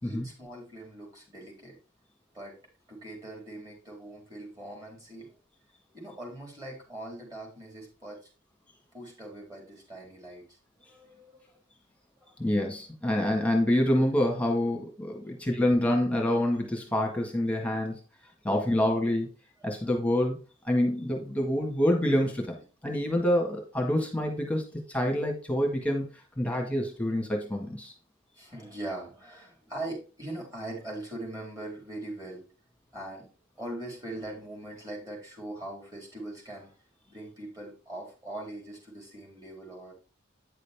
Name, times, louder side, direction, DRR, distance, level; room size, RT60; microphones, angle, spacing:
voice 1, 0.0-1.8 2.3-2.6 2.9-5.3 5.9-8.3 8.9-11.6 12.2-12.3 15.2-15.5 28.4-32.4 32.9-33.3 33.5-36.8 37.1-39.9, right 1 dB, 20° right, -1 dB, 3.9 m, -41 dB
voice 2, 12.4-17.9 18.4-19.3 19.6-20.4 20.6-22.6 22.8-26.0 26.4-27.9, left 1 dB, 5° left, 1 dB, 1.6 m, -27 dB
9.5 x 6.6 x 3.5 m, 0.35 s
head